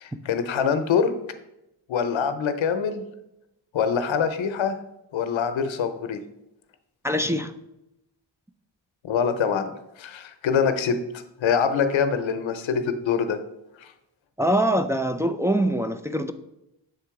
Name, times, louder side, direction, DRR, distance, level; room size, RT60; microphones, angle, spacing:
voice 1, 0.0-1.1 1.9-3.1 3.7-4.8 5.1-6.2 9.0-9.7 10.0-11.0 11.4-13.4 13.8-13.9, left 6 dB, 80° left, 9 dB, 0.7 m, -24 dB
voice 2, 7.0-7.5 14.4-16.3, right 1 dB, 5° right, 5 dB, 0.3 m, -23 dB
7.0 x 3.8 x 4.7 m, 0.87 s
cardioid pair, 70°, 46 cm